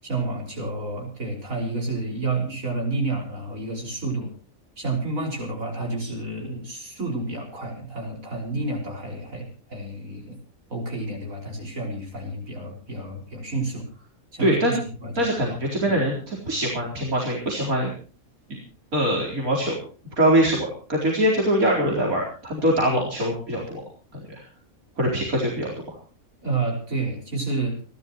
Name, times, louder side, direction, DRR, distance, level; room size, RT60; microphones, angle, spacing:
voice 1, 0.0-4.3 4.8-9.4 9.7-10.4 10.7-13.9 14.3-15.3 15.8-16.0 26.4-27.7, right 2 dB, 70° right, 1 dB, 6.2 m, -30 dB
voice 2, 14.4-14.8 15.2-17.9 18.9-19.8 20.2-23.8 24.1-24.4 25.0-25.9, equal, 85° right, -2 dB, 4.7 m, -23 dB
30.0 x 12.5 x 3.1 m, 0.38 s
omnidirectional pair, 1.5 m